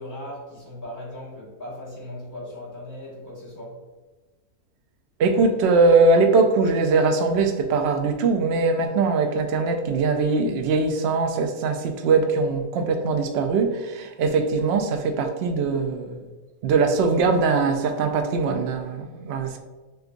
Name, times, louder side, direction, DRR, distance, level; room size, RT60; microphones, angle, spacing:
voice 1, 0.0-3.8, left 1 dB, 15° left, -7 dB, 1.4 m, -38 dB
voice 2, 5.2-16.2 16.6-19.6, right 4 dB, 65° right, 5 dB, 0.7 m, -21 dB
6.5 x 2.3 x 2.5 m, 1.2 s
omnidirectional pair, 1.5 m